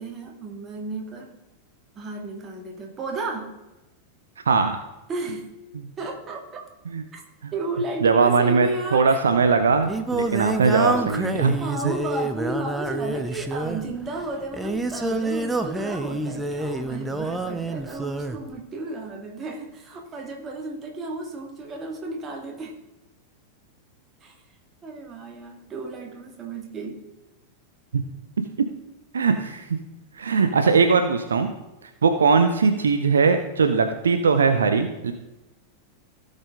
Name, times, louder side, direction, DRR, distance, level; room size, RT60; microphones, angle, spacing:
voice 1, 0.0-1.4 2.0-3.6 5.1-5.5 6.0-6.6 7.1-7.2 7.5-9.2 10.8-11.1 11.6-22.8 24.2-24.4 24.8-27.1, right 2 dB, 25° right, 2 dB, 2.0 m, -33 dB
voice 2, 8.0-11.6 27.9-28.0 29.1-29.6 30.2-31.5 32.0-35.1, right 5 dB, 70° right, 7 dB, 0.7 m, -20 dB
Singing, 9.4-18.4, right 2 dB, 10° right, 0.8 m, -28 dB
16.5 x 5.5 x 3.7 m, 1.0 s
figure-of-eight pair, 90°, 0 cm